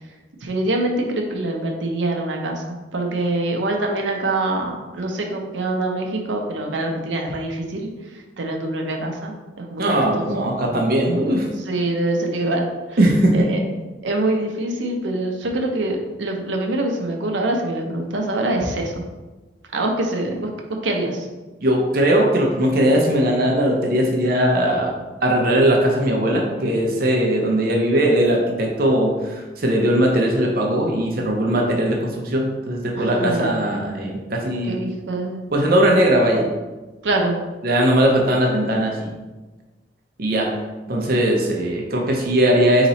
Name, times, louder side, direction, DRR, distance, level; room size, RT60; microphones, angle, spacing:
voice 1, 0.4-7.9 8.4-10.2 11.7-12.6 13.3-13.6 14.0-19.0 19.7-20.5 20.8-21.3 33.0-33.5 34.7-35.4 37.0-37.3, right 2 dB, 90° right, 2 dB, 0.7 m, -24 dB
voice 2, 9.8-11.5 13.0-13.5 21.6-24.9 25.2-34.8 35.5-36.5 37.6-39.1 40.2-40.6 40.9-42.9, right 1 dB, 55° right, 0 dB, 0.6 m, -19 dB
4.1 x 2.9 x 4.0 m, 1.2 s
head